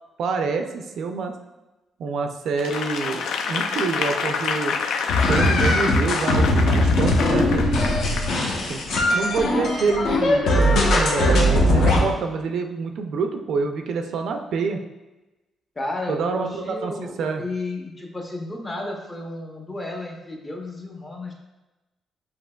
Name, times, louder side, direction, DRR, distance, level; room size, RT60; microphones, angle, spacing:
voice 1, 0.2-1.3 2.0-4.8 5.2-7.9 8.7-10.6 10.9-14.8 16.1-17.4, right 4 dB, 60° right, 5 dB, 0.4 m, -27 dB
Applause / Crowd, 2.6-8.3 8.8-9.0, left 5 dB, 80° left, 0.3 m, -28 dB
sound 1, 5.1-12.0, left 1 dB, 65° left, 0.8 m, -20 dB
voice 2, 15.8-21.3, left 2 dB, 15° left, 1 dB, 0.6 m, -32 dB
7.3 x 2.8 x 2.2 m, 1.0 s
cardioid pair, 175°, 0 cm